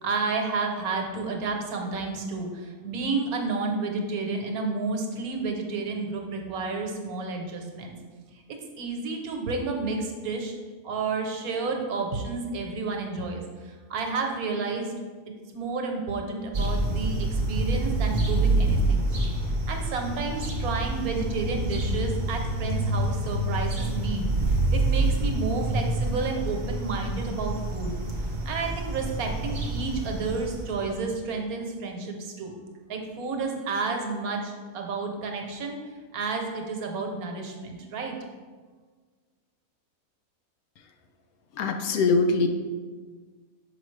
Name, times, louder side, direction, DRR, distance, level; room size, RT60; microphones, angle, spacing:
voice 1, 0.0-8.0 8.3-8.4 8.8-10.5 10.8-14.9 15.5-19.0 19.7-27.9 28.4-32.6 32.9-35.8 36.1-38.1, right 4 dB, 80° right, 2 dB, 1.3 m, -31 dB
sound 1, 16.5-31.1, right 2 dB, 35° right, 0.7 m, -27 dB
voice 2, 41.6-42.5, left 3 dB, 80° left, 6 dB, 1.1 m, -22 dB
6.0 x 5.0 x 3.2 m, 1.5 s
omnidirectional pair, 1.5 m